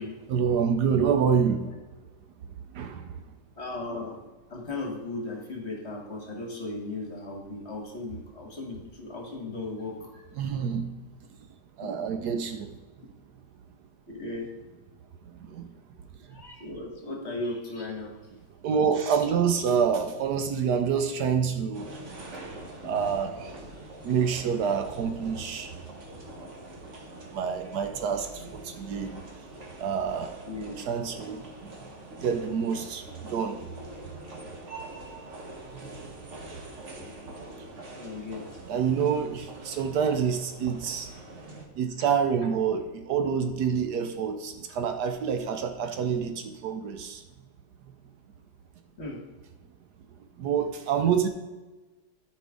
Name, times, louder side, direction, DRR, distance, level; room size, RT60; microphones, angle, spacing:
voice 1, 0.3-1.6 2.7-3.2 10.4-10.9 11.8-12.7 15.4-15.7 18.6-21.9 22.8-23.5 24.0-25.7 27.3-29.1 29.8-30.3 30.8-31.5 32.2-33.6 35.7-35.9 38.7-41.4 41.8-47.2 50.4-51.3, right 7 dB, 70° right, 7 dB, 1.2 m, -27 dB
voice 2, 3.5-4.2 4.5-10.2 11.8-11.9 14.1-14.5 16.3-18.1 30.5-30.8 37.0-37.1 38.0-38.5 49.0-49.2, left 2 dB, 40° left, 1 dB, 1.4 m, -36 dB
sound 1, 21.7-41.7, right 2 dB, 45° right, 1.5 m, -44 dB
13.0 x 5.1 x 3.6 m, 1.2 s
omnidirectional pair, 1.9 m